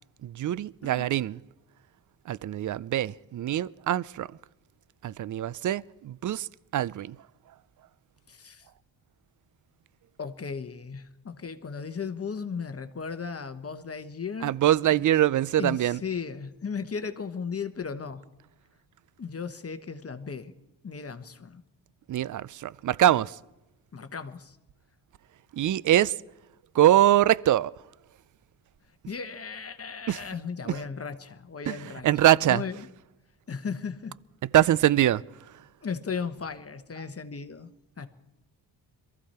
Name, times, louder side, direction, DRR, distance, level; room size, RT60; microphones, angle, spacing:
voice 1, 0.2-1.4 2.3-4.3 5.0-6.5 6.7-7.2 14.4-16.0 22.1-23.3 25.5-26.1 26.7-27.7 30.1-30.2 30.7-30.8 31.7-31.8 32.0-32.6 34.5-35.2, right 12 dB, 45° right, 0.5 m, -23 dB
voice 2, 8.3-8.7 10.2-14.5 14.9-15.0 15.6-18.2 19.2-20.5 20.8-21.6 23.9-24.6 29.1-32.1 32.4-32.9 33.5-34.2 35.8-37.7 38.0-38.1, left 5 dB, 30° left, 1.1 m, -36 dB
22.5 x 14.5 x 4.3 m
supercardioid pair, 60°, 45 cm